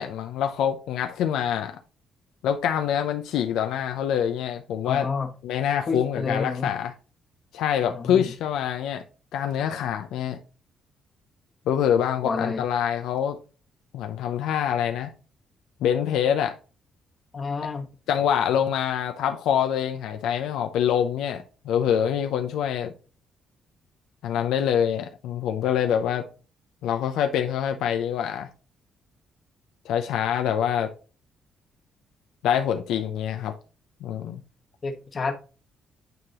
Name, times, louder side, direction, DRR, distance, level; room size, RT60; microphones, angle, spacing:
voice 1, 0.0-1.7 2.4-5.1 5.4-6.9 7.5-9.0 9.3-10.4 11.7-13.4 13.9-15.1 15.8-16.5 18.1-22.9 24.2-26.3 26.8-28.5 29.8-30.9 32.4-33.5 34.0-34.4, left 9 dB, 85° left, 0.5 m, -25 dB
voice 2, 4.8-5.3 5.9-6.7 7.8-8.2 12.2-12.6 17.3-17.9 34.8-35.3, left 4 dB, 40° left, 1.1 m, -29 dB
9.2 x 3.8 x 2.9 m
cardioid pair, 90°, 0 cm